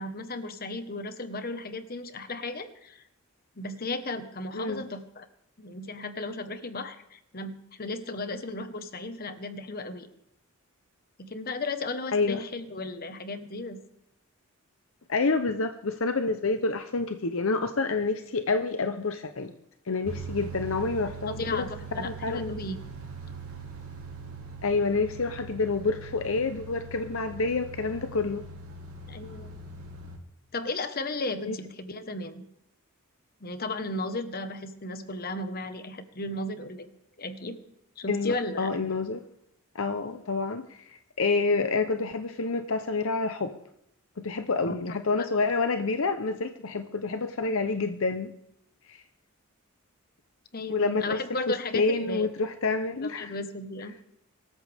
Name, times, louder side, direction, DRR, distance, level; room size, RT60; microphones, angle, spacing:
voice 1, 0.0-3.0 3.6-5.3 5.6-10.1 11.2-13.8 21.4-22.8 29.1-29.5 30.5-32.4 33.4-36.9 37.2-37.6 38.0-38.7 44.6-44.8 50.5-52.3 53.0-53.9, left 2 dB, 45° left, 9 dB, 1.2 m, -35 dB
voice 2, 4.5-4.9 12.1-12.4 15.1-19.5 19.9-21.7 22.0-22.5 24.6-28.4 31.4-31.6 38.1-39.2 39.7-40.6 41.2-43.5 44.2-48.3 48.9-49.0 50.7-51.2 51.7-53.3, left 3 dB, 65° left, 8 dB, 0.8 m, -28 dB
sound 1, 20.0-30.2, right 4 dB, 80° right, 3.0 m, -41 dB
24.0 x 13.5 x 3.5 m, 0.77 s
head